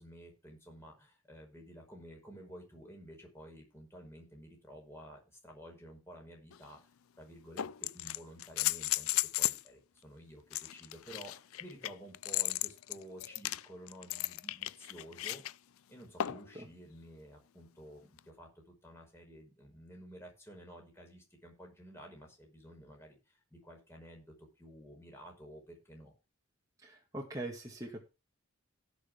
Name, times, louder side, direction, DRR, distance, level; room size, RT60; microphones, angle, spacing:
voice 1, 0.0-6.8 7.2-15.4 15.9-24.3 24.6-26.1, equal, 10° left, 0 dB, 5.6 m, -52 dB
sound 1, 6.5-6.6 7.6-9.7 10.5-15.5 16.2-16.5 18.2-18.3, left 15 dB, 75° left, 0.4 m, -35 dB
voice 2, 16.3-16.7 26.8-28.1, right 1 dB, 15° right, -1 dB, 2.1 m, -43 dB
17.5 x 6.6 x 3.7 m, 0.29 s
head